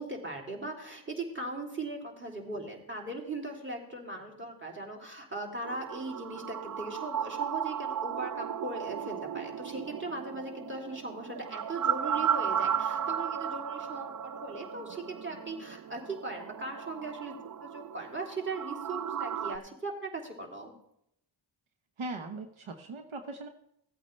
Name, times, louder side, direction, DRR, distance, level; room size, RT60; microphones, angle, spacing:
voice 1, 0.0-20.7, right 2 dB, 25° right, 0 dB, 3.1 m, -39 dB
sound 1, 5.6-19.6, right 8 dB, 45° right, 0.5 m, -35 dB
voice 2, 22.0-23.5, right 2 dB, 75° right, 5 dB, 1.1 m, -39 dB
16.0 x 8.4 x 3.3 m, 0.76 s
cardioid pair, 50°, 49 cm